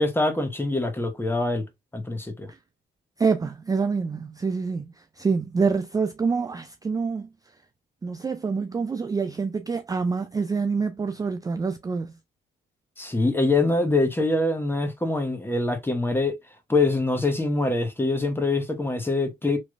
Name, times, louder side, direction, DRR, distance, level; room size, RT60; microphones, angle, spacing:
voice 1, 0.0-1.7 1.9-2.5 13.0-16.4 16.7-19.6, left 2 dB, 10° left, 0.9 m, -24 dB
voice 2, 3.2-7.3 8.0-12.1, right 5 dB, 20° right, 0.3 m, -26 dB
3.1 x 3.0 x 2.4 m
cardioid pair, 90°, 20 cm